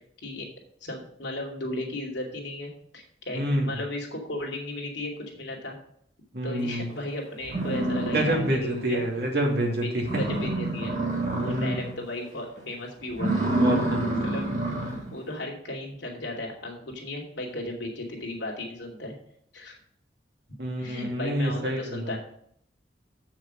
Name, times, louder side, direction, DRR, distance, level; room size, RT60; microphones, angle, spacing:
voice 1, 0.8-5.8 6.4-9.1 9.8-13.3 14.2-14.5 15.1-19.1 19.5-19.7 20.8-22.2, left 1 dB, 80° left, 0 dB, 2.6 m, -35 dB
voice 2, 3.3-3.7 6.3-6.9 8.1-10.2 11.5-11.8 13.6-14.2 14.5-14.7 20.6-22.1, right 1 dB, 60° right, 1 dB, 2.4 m, -27 dB
sound 1, 7.0-7.1 7.4-8.8 9.2-9.3 9.7-9.8 10.0-11.9 12.3-12.6 13.1-15.1, right 1 dB, 40° right, 2.6 m, -27 dB
7.9 x 6.4 x 6.4 m, 0.67 s
head